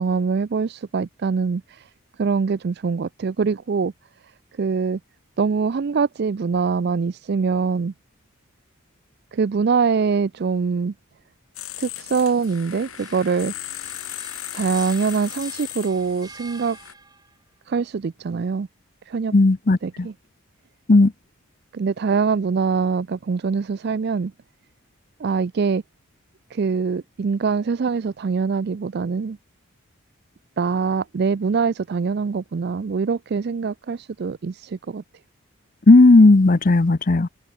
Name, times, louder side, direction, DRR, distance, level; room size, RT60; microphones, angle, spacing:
voice 1, 0.0-1.9 2.2-3.9 4.6-5.0 5.4-7.9 9.3-10.9 11.8-13.5 14.5-16.8 17.7-18.7 19.1-19.3 19.8-20.1 21.7-24.3 25.2-25.8 26.5-29.4 30.6-35.0, right 5 dB, 50° right, 0.4 m, -23 dB
sound 1, 11.6-16.9, left 13 dB, 80° left, 2.3 m, -36 dB
sound 2, 12.2-17.4, right 4 dB, 20° right, 5.0 m, -46 dB
voice 2, 19.3-20.1 20.9-21.1 35.9-37.3, left 2 dB, 40° left, 0.6 m, -14 dB
head